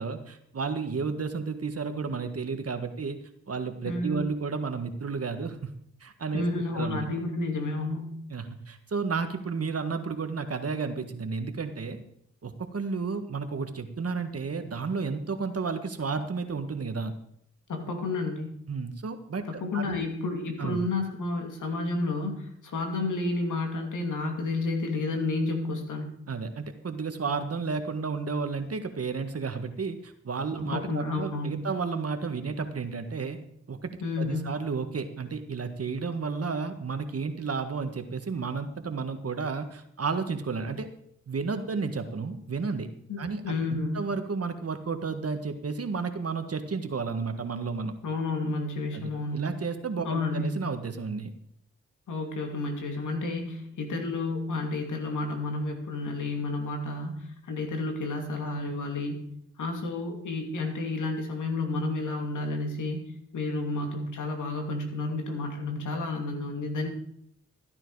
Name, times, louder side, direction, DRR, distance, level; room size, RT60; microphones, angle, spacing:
voice 1, 0.0-3.2 3.5-5.7 6.0-6.4 6.7-7.1 8.3-12.0 12.4-17.1 18.7-20.1 20.6-20.8 26.3-33.4 33.7-33.9 34.2-40.9 41.3-42.9 43.2-47.9 48.9-51.3, right 4 dB, 50° right, 7 dB, 1.6 m, -32 dB
voice 2, 3.8-4.3 6.3-8.1 17.7-18.6 19.5-26.1 30.6-31.7 34.0-34.5 43.1-44.0 48.0-49.5 50.0-50.6 52.1-59.2 59.6-63.0 63.3-66.9, left 2 dB, 80° left, 3 dB, 2.6 m, -31 dB
14.5 x 9.7 x 4.8 m, 0.71 s
cardioid pair, 50°, 30 cm